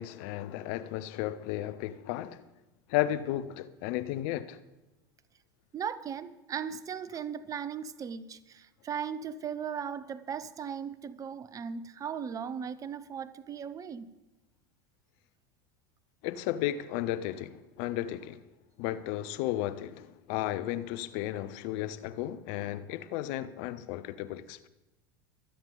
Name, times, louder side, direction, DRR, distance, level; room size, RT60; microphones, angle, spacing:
voice 1, 0.0-2.4 2.9-4.6 16.2-18.4 18.8-24.7, left 13 dB, 55° left, 0.7 m, -34 dB
voice 2, 5.7-14.1, right 7 dB, 30° right, 0.8 m, -37 dB
23.5 x 8.9 x 3.9 m
figure-of-eight pair, 75°, 12 cm